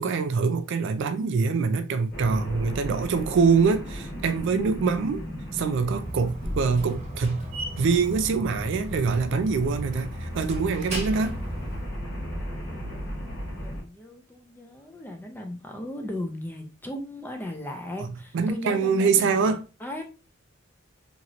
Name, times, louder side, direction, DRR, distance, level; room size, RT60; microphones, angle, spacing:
voice 1, 0.0-5.2 5.5-7.5 7.8-11.4 18.3-19.6, right 5 dB, 65° right, 0.4 m, -24 dB
sound 1, 2.1-13.8, equal, 50° left, 1.3 m, -36 dB
Slam, 5.7-11.9, equal, 35° right, 1.0 m, -36 dB
voice 2, 10.9-11.6 12.4-13.3 13.6-20.0, left 1 dB, 10° left, 0.5 m, -38 dB
3.0 x 2.8 x 2.4 m
head